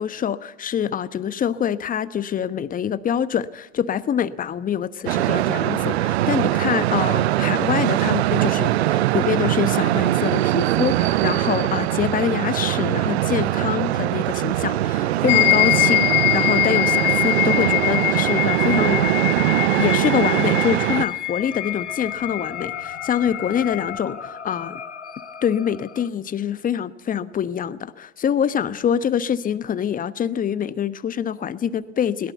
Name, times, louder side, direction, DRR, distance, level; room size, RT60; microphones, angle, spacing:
voice 1, 0.0-19.4 19.8-24.8 25.4-32.3, left 8 dB, 25° left, 15 dB, 1.1 m, -25 dB
sound 1, 5.1-21.1, right 14 dB, 65° right, 0.7 m, -21 dB
sound 2, 15.3-24.0, left 22 dB, 55° left, 3.3 m, -23 dB
sound 3, 18.0-26.1, left 6 dB, 90° left, 1.1 m, -38 dB
21.0 x 18.5 x 8.1 m, 1.0 s
hypercardioid pair, 85°, 34 cm